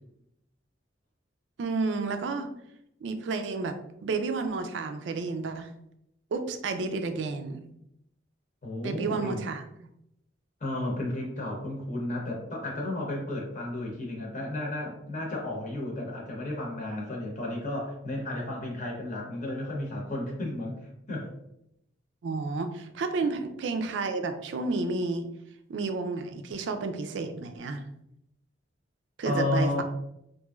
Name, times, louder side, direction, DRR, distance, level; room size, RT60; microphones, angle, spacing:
voice 1, 1.6-2.5 3.0-5.7 6.3-7.6 8.8-9.9 22.2-25.2 25.7-27.9 29.2-29.8, right 3 dB, 80° right, 8 dB, 0.4 m, -31 dB
voice 2, 8.6-9.4 10.6-20.8 21.1-21.3 29.2-29.8, left 1 dB, 45° left, -1 dB, 0.8 m, -32 dB
3.0 x 2.5 x 2.3 m, 0.79 s
head